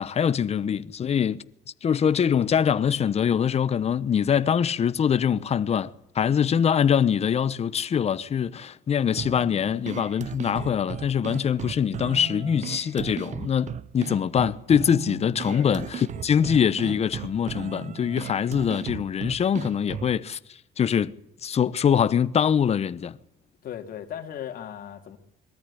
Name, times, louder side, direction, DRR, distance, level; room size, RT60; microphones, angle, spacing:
voice 1, 0.0-1.4 1.8-20.4 20.8-21.1 21.4-23.2, left 8 dB, 40° left, 1.0 m, -23 dB
sound 1, 9.2-20.2, right 8 dB, 45° right, 0.8 m, -36 dB
voice 2, 23.6-25.2, left 10 dB, 60° left, 2.8 m, -37 dB
23.0 x 14.0 x 10.0 m
cardioid pair, 110°, 17 cm